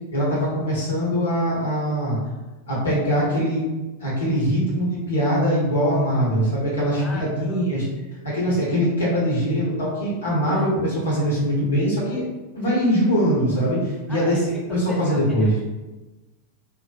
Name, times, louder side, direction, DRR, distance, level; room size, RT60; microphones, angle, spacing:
voice 1, 0.1-2.2 2.7-3.6 4.0-7.9 8.2-12.2 12.5-14.4 14.7-15.5, equal, 70° left, -7 dB, 1.1 m, -22 dB
voice 2, 7.0-7.6 10.4-10.7 14.1-14.5 14.9-15.6, left 1 dB, 10° left, -3 dB, 0.6 m, -36 dB
2.6 x 2.1 x 2.5 m, 1.1 s
figure-of-eight pair, 90°, 0 cm